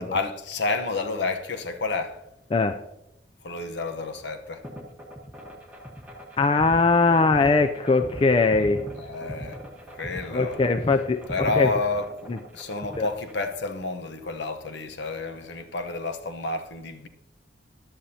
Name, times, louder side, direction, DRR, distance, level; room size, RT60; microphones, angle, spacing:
voice 1, 0.0-2.2 3.4-4.7 9.0-9.6 9.9-10.6 11.3-17.1, left 3 dB, 70° left, 1.0 m, -30 dB
sound 1, 4.6-13.5, equal, 10° right, 1.2 m, -39 dB
voice 2, 6.4-8.8 10.3-11.7 12.3-12.4 13.0-13.1, left 3 dB, 30° left, 0.3 m, -21 dB
14.5 x 10.0 x 2.8 m
head